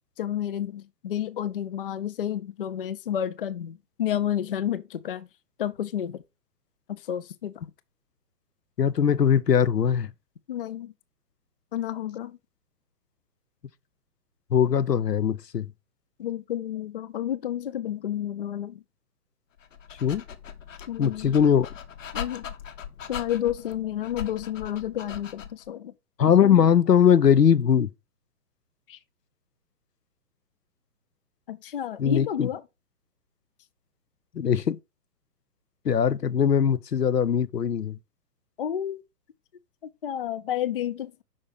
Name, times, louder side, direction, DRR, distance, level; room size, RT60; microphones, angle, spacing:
voice 1, 0.2-5.3 5.6-6.2 6.9-7.5 10.5-10.9 11.7-12.4 16.2-18.8 20.9-21.3 22.1-22.5 23.1-25.9 28.9-29.0 31.5-32.6 38.6-39.0 40.0-41.2, left 10 dB, 40° left, 0.4 m, -30 dB
voice 2, 8.8-10.1 14.5-15.7 20.0-20.2 21.0-21.7 26.2-27.9 32.0-32.5 34.3-34.8 35.8-38.0, left 8 dB, 85° left, 0.7 m, -21 dB
Dog, 19.6-25.7, left 8 dB, 55° left, 1.0 m, -40 dB
5.6 x 4.3 x 4.7 m
figure-of-eight pair, 125°, 47 cm